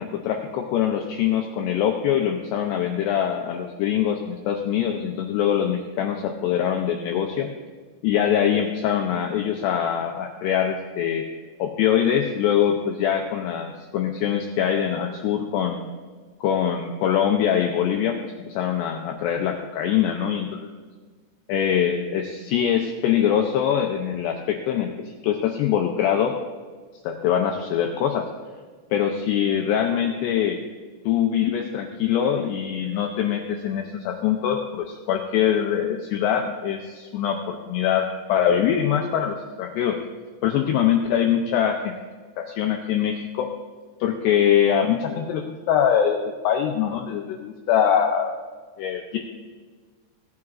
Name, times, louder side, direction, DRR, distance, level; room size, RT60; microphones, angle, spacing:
voice 1, 0.0-7.5 8.0-11.2 11.6-15.9 16.4-20.7 21.5-26.3 27.0-28.3 28.9-30.6 31.1-40.0 40.4-41.9 42.4-43.5 44.0-48.3 48.8-49.2, left 9 dB, 90° left, 3 dB, 2.4 m, -23 dB
17.0 x 9.5 x 2.4 m, 1.5 s
omnidirectional pair, 5.6 m